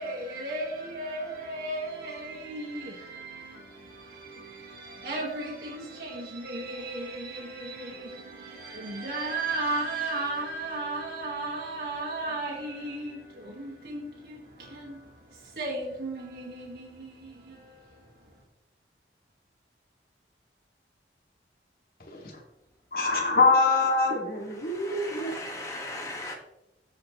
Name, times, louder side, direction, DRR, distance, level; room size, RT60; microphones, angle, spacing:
voice 1, 0.0-18.3, right 2 dB, 60° right, 1.7 m, -35 dB
voice 2, 22.9-25.3, left 3 dB, 55° left, 2.2 m, -24 dB
voice 3, 24.5-26.3, left 2 dB, 20° left, 1.6 m, -38 dB
14.0 x 4.9 x 3.1 m
head